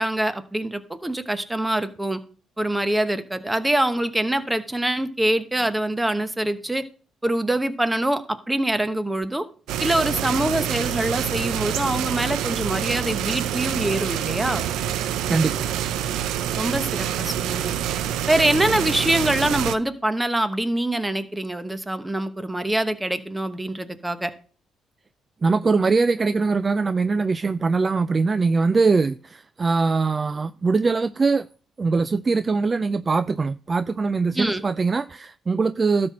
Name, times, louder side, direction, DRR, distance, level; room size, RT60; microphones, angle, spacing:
voice 1, 0.0-2.2 2.6-6.8 7.2-9.4 9.8-14.7 16.6-17.7 18.3-24.3 34.4-34.6, right 1 dB, 10° right, 1.0 m, -24 dB
sound 1, 9.7-19.7, right 10 dB, 90° right, 0.5 m, -26 dB
voice 2, 15.3-15.7 25.4-31.5 31.8-36.1, right 4 dB, 30° right, 0.3 m, -22 dB
12.5 x 4.3 x 6.1 m
cardioid pair, 90°, 0 cm